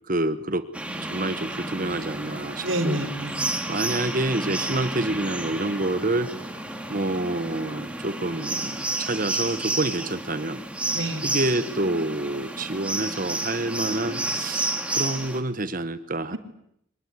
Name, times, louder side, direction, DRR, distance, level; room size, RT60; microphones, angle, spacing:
voice 1, 0.1-0.7 1.0-3.0 3.7-6.3 6.9-10.6 11.2-16.4, right 2 dB, 45° right, 12 dB, 1.2 m, -27 dB
sound 1, 0.7-15.4, right 2 dB, 5° right, 3.0 m, -31 dB
voice 2, 2.6-3.5 10.9-11.2, right 1 dB, 80° right, 6 dB, 3.7 m, -28 dB
24.5 x 20.5 x 9.7 m, 0.73 s
head